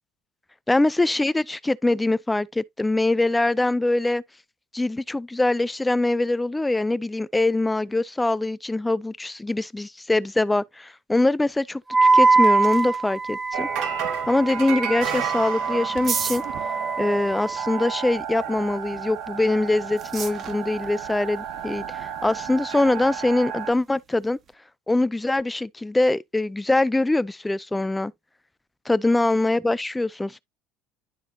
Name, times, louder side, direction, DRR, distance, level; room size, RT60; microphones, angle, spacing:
voice 1, 0.7-4.2 4.7-13.7 14.3-16.4 17.0-24.4 24.9-28.1 28.9-30.4, left 2 dB, 10° left, 0.4 m, -23 dB
Wind instrument woodwind instrument, 11.9-18.1, right 3 dB, 10° right, 1.2 m, -23 dB
sound 1, 12.0-24.5, right 7 dB, 40° right, 1.2 m, -40 dB
sound 2, 13.5-23.7, right 8 dB, 70° right, 2.1 m, -32 dB
11.5 x 3.9 x 2.9 m
supercardioid pair, 100°, 0 cm